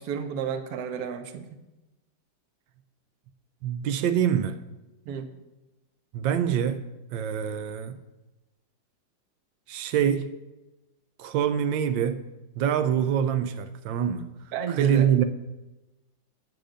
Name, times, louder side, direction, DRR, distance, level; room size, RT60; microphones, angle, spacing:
voice 1, 0.0-1.5 5.1-5.3 14.5-15.1, right 7 dB, 60° right, 9 dB, 1.2 m, -32 dB
voice 2, 3.6-4.6 6.1-6.8 7.1-8.0 9.7-10.3 11.2-12.2 12.6-14.3 14.7-15.2, right 9 dB, 85° right, 10 dB, 1.3 m, -25 dB
8.6 x 7.8 x 5.1 m, 1.0 s
omnidirectional pair, 2.0 m